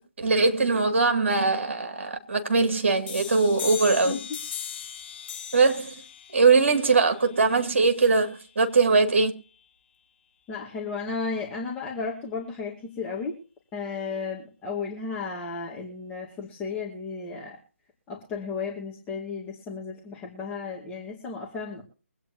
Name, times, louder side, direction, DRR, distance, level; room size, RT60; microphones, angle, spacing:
voice 1, 0.2-4.2 5.5-5.9 6.3-9.3, right 4 dB, 60° right, 2.4 m, -21 dB
sound 1, 3.1-8.5, left 8 dB, 40° left, 5.7 m, -39 dB
voice 2, 10.5-13.4 13.7-17.6 18.1-21.8, left 5 dB, 15° left, 2.2 m, -34 dB
23.5 x 9.1 x 2.8 m
figure-of-eight pair, 145°, 7 cm